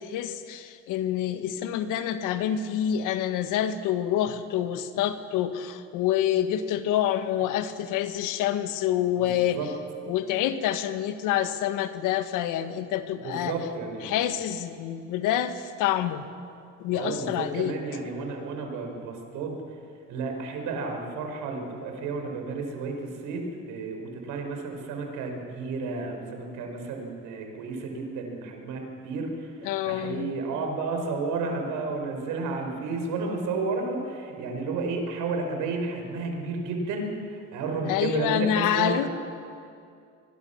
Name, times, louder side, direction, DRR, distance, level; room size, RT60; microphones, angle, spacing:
voice 1, 0.0-9.6 10.1-13.5 14.0-16.2 16.8-17.8 29.6-30.3 37.9-39.1, left 10 dB, 75° left, 10 dB, 1.6 m, -27 dB
voice 2, 9.2-9.7 13.2-14.2 16.9-19.6 20.1-39.1, right 3 dB, 80° right, 3 dB, 5.3 m, -32 dB
24.5 x 21.0 x 7.2 m, 2.4 s
supercardioid pair, 85°, 31 cm